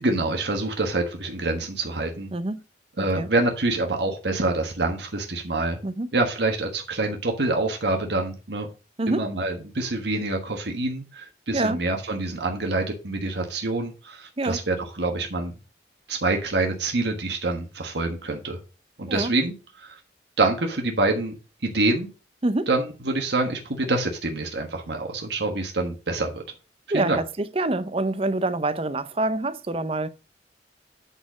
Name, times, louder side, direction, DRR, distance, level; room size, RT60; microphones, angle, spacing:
voice 1, 0.0-2.3 3.0-5.8 6.1-8.7 9.1-15.5 16.1-18.6 19.0-19.9 20.4-21.4 21.6-22.1 22.7-26.4 26.9-27.2, right 2 dB, 70° right, 1.4 m, -26 dB
voice 2, 2.3-2.6 3.0-3.3 5.8-6.1 9.0-9.2 11.5-11.8 14.4-14.6 19.1-19.3 22.4-22.7 26.9-30.1, right 2 dB, 30° right, 0.6 m, -26 dB
9.0 x 4.3 x 5.0 m
head